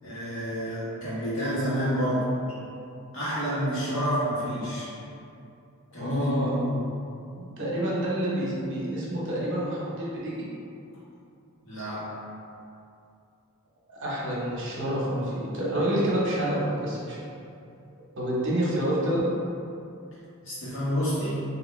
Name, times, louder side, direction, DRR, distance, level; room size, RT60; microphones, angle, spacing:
voice 1, 0.0-2.3 3.1-4.9 5.9-6.8 11.6-12.1 20.4-21.3, equal, 60° left, -10 dB, 1.3 m, -28 dB
voice 2, 6.0-6.5 7.4-10.5 13.9-17.2 18.2-19.2, right 1 dB, 60° right, -6 dB, 0.8 m, -28 dB
3.3 x 2.8 x 3.1 m, 2.6 s
head